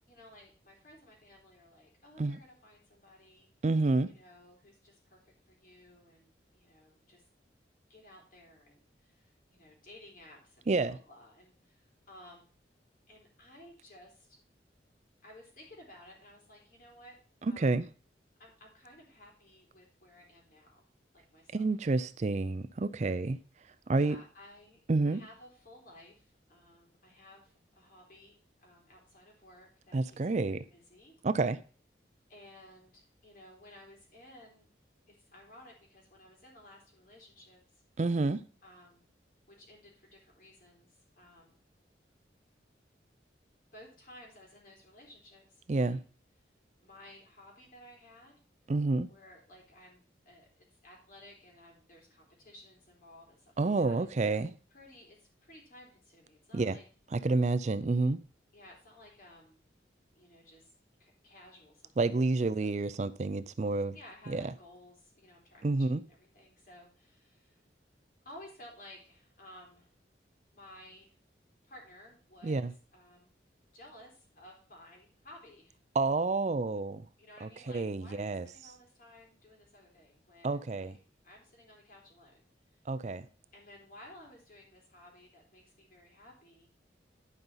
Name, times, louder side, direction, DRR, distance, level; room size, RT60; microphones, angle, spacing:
voice 1, 0.1-3.5 4.1-7.3 7.9-12.5 13.1-14.4 15.2-17.8 18.4-20.9 21.1-21.7 23.9-24.8 25.0-31.2 32.3-34.7 35.1-37.8 38.6-39.0 39.5-41.6 43.7-46.0 46.8-48.4 49.1-50.5 50.8-54.5 54.7-56.8 58.5-59.6 60.1-60.7 61.0-62.7 63.9-67.6 68.2-69.9 70.5-71.2 71.6-73.3 73.7-75.8 77.2-81.0 81.2-82.4 82.7-82.8 83.5-86.7, left 1 dB, 50° left, 3.9 m, -56 dB
voice 2, 3.6-4.1 10.7-11.0 17.6-17.8 21.5-23.4 23.9-24.2 24.9-25.2 29.9-30.6 31.2-31.6 38.0-38.4 45.7-46.0 48.7-49.1 53.6-54.5 56.5-56.8 57.1-58.2 62.0-63.9 64.3-64.5 65.6-66.0 72.4-72.7 76.0-77.0 77.4-78.5 80.4-81.0 82.9-83.3, right 3 dB, 40° right, 0.4 m, -29 dB
10.5 x 5.3 x 5.5 m
head